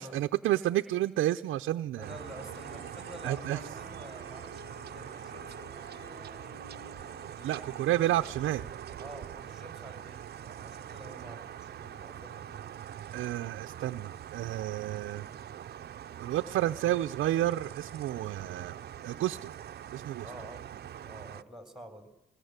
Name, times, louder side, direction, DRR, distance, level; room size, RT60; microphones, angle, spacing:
voice 1, 0.0-2.2 3.2-3.6 7.4-8.6 13.1-15.3 16.2-18.8 19.0-19.5 19.9-20.3, right 14 dB, 80° right, 6 dB, 0.7 m, -30 dB
sound 1, 2.0-9.1, left 5 dB, 65° left, 3.6 m, -53 dB
voice 2, 2.0-6.2 9.0-12.6 20.2-20.6 21.0-22.1, equal, ahead, 7 dB, 4.1 m, -49 dB
sound 2, 2.0-21.4, right 10 dB, 55° right, 0.8 m, -44 dB
21.0 x 19.0 x 8.2 m, 0.92 s
cardioid pair, 90°, 20 cm